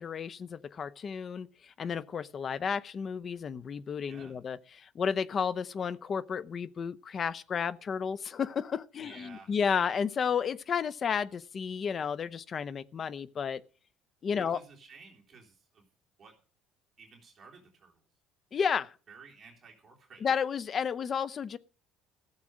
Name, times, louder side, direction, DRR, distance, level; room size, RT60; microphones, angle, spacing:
voice 1, 0.0-13.6 14.2-14.6 18.5-18.9 20.2-21.6, left 6 dB, 35° left, 0.6 m, -32 dB
voice 2, 9.0-9.5 14.4-15.9 16.2-16.4 17.0-18.0 19.1-20.2, right 5 dB, 30° right, 3.6 m, -54 dB
14.5 x 7.4 x 6.3 m
cardioid pair, 125°, 0 cm